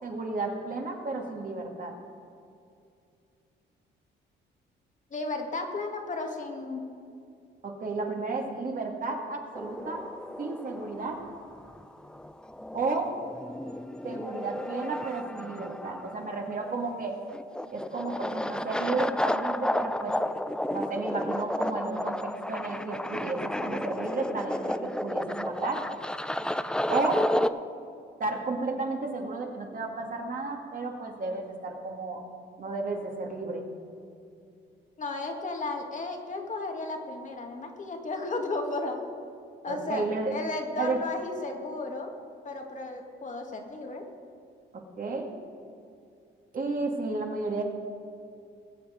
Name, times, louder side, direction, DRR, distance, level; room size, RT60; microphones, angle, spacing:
voice 1, 0.0-1.9 7.6-10.0 10.4-11.2 12.7-13.1 14.0-17.2 17.7-20.2 20.7-25.8 26.9-27.3 28.2-32.2 32.6-33.7 39.7-40.3 40.8-41.0 44.7-45.3 46.5-47.6, right 3 dB, 45° right, 1 dB, 2.1 m, -32 dB
voice 2, 5.1-6.8 35.0-39.0 39.6-40.1 40.3-42.1 42.4-44.1, left 2 dB, 40° left, 3 dB, 1.7 m, -34 dB
sound 1, 9.5-27.5, left 1 dB, 5° left, 0.4 m, -32 dB
20.0 x 7.3 x 5.0 m, 2.5 s
cardioid pair, 90°, 20 cm